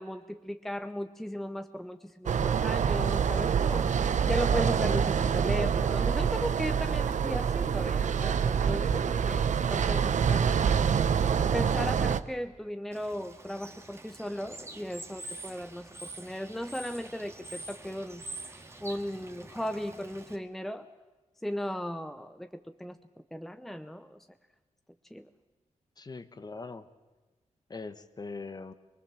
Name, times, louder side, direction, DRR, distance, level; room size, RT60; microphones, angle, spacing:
voice 1, 0.0-10.5 11.4-18.3 18.8-20.9 21.4-23.0 23.3-24.3 25.1-25.3, equal, ahead, 9 dB, 0.7 m, -36 dB
sound 1, 2.3-12.2, right 7 dB, 70° right, 0.8 m, -26 dB
Bird / Water, 12.9-20.4, right 2 dB, 20° right, 1.9 m, -46 dB
voice 2, 26.0-26.9 27.7-28.7, left 3 dB, 30° left, 11 dB, 1.1 m, -41 dB
24.0 x 22.5 x 7.4 m, 1.2 s
wide cardioid pair, 140°, 13 cm